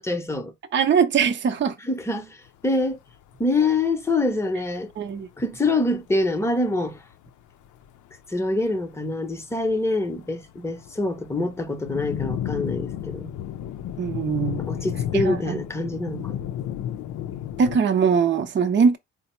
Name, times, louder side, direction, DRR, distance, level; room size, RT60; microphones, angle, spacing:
voice 1, 0.0-0.5 1.8-3.0 3.4-4.9 5.4-7.0 8.3-13.3 14.7-16.5, left 2 dB, 10° left, 0.8 m, -25 dB
voice 2, 0.7-1.7 5.0-5.3 14.0-14.7 15.1-15.6 17.6-19.0, right 6 dB, 40° right, 0.6 m, -21 dB
sound 1, 2.5-2.6 2.8-2.9 3.1-3.6 3.9-4.0 4.1-4.5 5.1-5.2 5.7-5.8 6.1-6.3 6.9-7.3 7.6-8.2 8.4-9.4 9.7-17.8, left 10 dB, 75° left, 0.5 m, -33 dB
4.0 x 2.0 x 4.3 m
cardioid pair, 90°, 30 cm